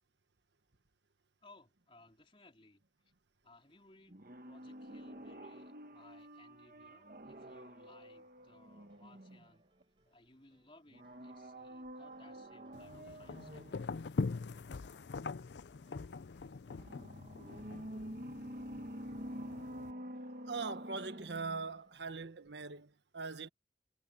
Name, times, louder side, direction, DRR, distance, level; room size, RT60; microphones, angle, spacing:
voice 1, 1.4-3.1 3.4-9.6 10.0-14.1, left 2 dB, 30° left, 4.1 m, -63 dB
sound 1, 4.1-9.8 10.9-13.9 16.7-21.9 22.2-22.3, equal, 50° right, 1.4 m, -48 dB
sound 2, 6.8-22.3, right 1 dB, 30° right, 7.3 m, -76 dB
sound 3, 12.7-19.9, left 4 dB, 85° left, 0.5 m, -43 dB
voice 2, 20.5-23.5, right 4 dB, 90° right, 1.4 m, -42 dB
head